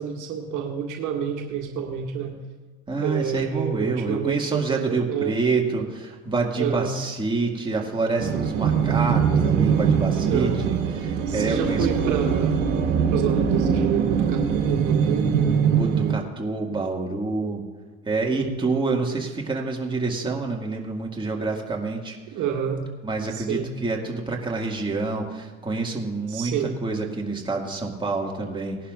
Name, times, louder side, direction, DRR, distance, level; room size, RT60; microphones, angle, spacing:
voice 1, 0.0-2.4 3.0-5.4 6.6-7.0 10.3-10.6 11.3-12.6 13.1-15.4 18.3-18.6 22.3-22.8 23.3-23.7 26.3-26.8, right 8 dB, 55° right, 1 dB, 1.7 m, -28 dB
voice 2, 2.9-10.8 11.0-11.9 15.6-17.6 18.1-22.2 23.0-26.5 26.8-28.8, right 3 dB, 15° right, 0 dB, 2.1 m, -27 dB
sound 1, 8.2-16.1, right 7 dB, 80° right, 1.4 m, -22 dB
18.5 x 11.0 x 2.6 m, 1.4 s
hypercardioid pair, 70°, 37 cm